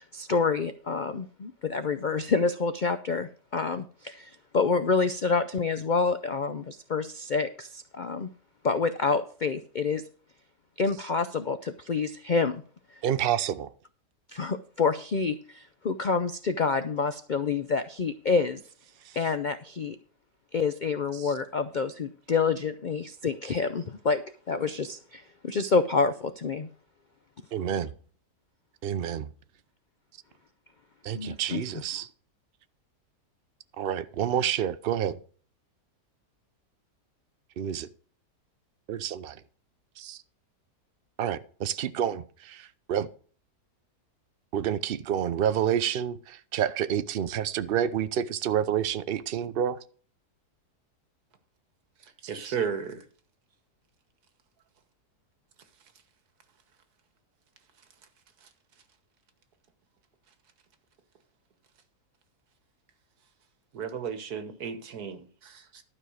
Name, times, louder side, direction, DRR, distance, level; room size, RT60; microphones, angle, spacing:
voice 1, 0.0-8.3 8.6-10.0 10.8-12.6 14.3-18.6 19.2-20.0 20.5-24.2 24.5-26.7 31.1-31.6, left 4 dB, 80° left, 0.4 m, -28 dB
voice 2, 13.0-13.7 19.0-19.2 21.1-21.3 27.5-27.9 28.8-29.3 31.0-32.1 33.8-35.2 37.6-37.9 38.9-39.4 40.0-40.2 41.2-43.1 44.5-49.8, right 9 dB, 55° right, 0.6 m, -29 dB
voice 3, 52.3-53.0 63.7-65.8, right 7 dB, 75° right, 1.7 m, -34 dB
12.0 x 5.4 x 6.3 m
omnidirectional pair, 1.7 m